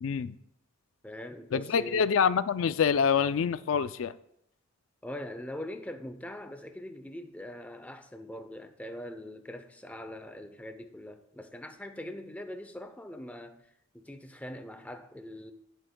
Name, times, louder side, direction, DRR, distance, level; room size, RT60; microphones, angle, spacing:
voice 1, 0.0-0.3 1.5-4.1, left 6 dB, 75° left, 0.4 m, -26 dB
voice 2, 1.0-2.2 5.0-13.6 13.9-15.5, left 1 dB, 5° left, 0.6 m, -42 dB
18.0 x 7.9 x 2.2 m
head